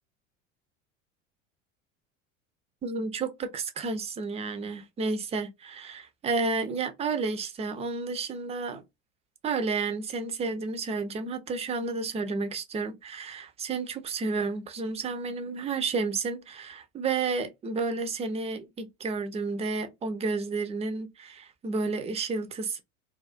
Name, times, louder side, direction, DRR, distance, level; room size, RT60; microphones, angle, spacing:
voice 1, 2.8-8.8 9.4-22.8, right 4 dB, 15° right, 0.4 m, -31 dB
2.3 x 2.3 x 2.4 m
hypercardioid pair, 80°, 39 cm